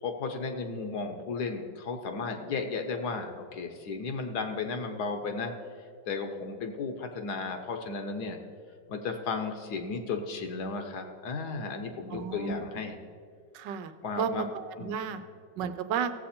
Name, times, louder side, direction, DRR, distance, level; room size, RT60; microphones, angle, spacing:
voice 1, 0.0-5.5 6.1-8.4 8.9-13.0 14.0-14.5 14.8-15.0, left 4 dB, 65° left, 5 dB, 1.4 m, -34 dB
voice 2, 12.1-12.5 13.5-15.2 15.6-16.1, right 7 dB, 80° right, 10 dB, 1.3 m, -33 dB
16.5 x 7.6 x 4.3 m, 2.1 s
omnidirectional pair, 1.9 m